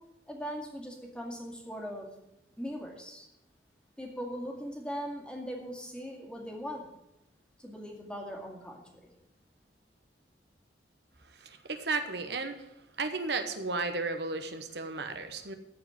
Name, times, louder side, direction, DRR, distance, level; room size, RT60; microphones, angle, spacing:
voice 1, 0.3-2.1 2.6-3.3 4.0-6.9 7.6-9.1, equal, 5° left, 0 dB, 2.2 m, -40 dB
voice 2, 11.3-12.7 13.0-15.5, right 3 dB, 70° right, 8 dB, 1.0 m, -34 dB
14.5 x 5.0 x 9.3 m, 0.89 s
head